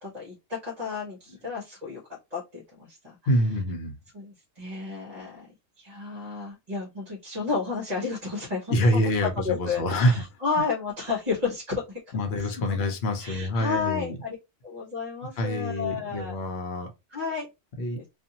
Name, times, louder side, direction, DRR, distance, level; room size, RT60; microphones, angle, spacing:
voice 1, 0.0-2.0 2.3-2.6 2.9-3.2 4.1-5.5 5.8-9.1 9.4-12.5 13.2-14.4 14.6-16.3 17.1-17.5 17.9-18.0, left 5 dB, 35° right, 1.1 m, -32 dB
voice 2, 3.3-4.0 8.7-10.2 12.1-14.2 15.4-16.9 17.8-18.0, left 1 dB, 60° left, 0.9 m, -26 dB
2.6 x 2.5 x 2.8 m
omnidirectional pair, 1.3 m